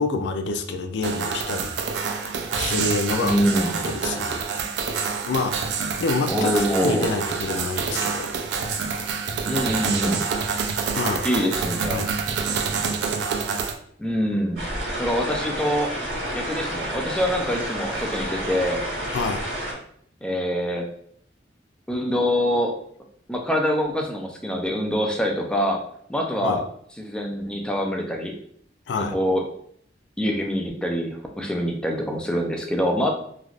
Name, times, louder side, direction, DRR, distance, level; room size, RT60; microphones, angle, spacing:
voice 1, 0.0-1.8 2.2-3.4 3.8-4.4 5.3-8.3 11.0-11.3 11.9-12.2 19.1-19.5 26.4-26.6 28.9-29.2, left 3 dB, 75° left, 6 dB, 0.3 m, -27 dB
sound 1, 1.0-13.7, right 5 dB, 70° right, 0.4 m, -27 dB
voice 2, 3.2-3.7 6.3-7.1 9.5-10.2 11.2-12.0 14.0-14.6 15.0-15.9 16.3-18.8 20.2-20.9 21.9-22.7 23.3-25.8 26.1-26.6 27.0-28.3 29.0-29.4 30.2-33.1, equal, 5° left, 2 dB, 0.4 m, -25 dB
sound 2, 14.6-19.7, right 1 dB, 90° right, 1.5 m, -30 dB
3.2 x 2.4 x 2.4 m, 0.65 s
head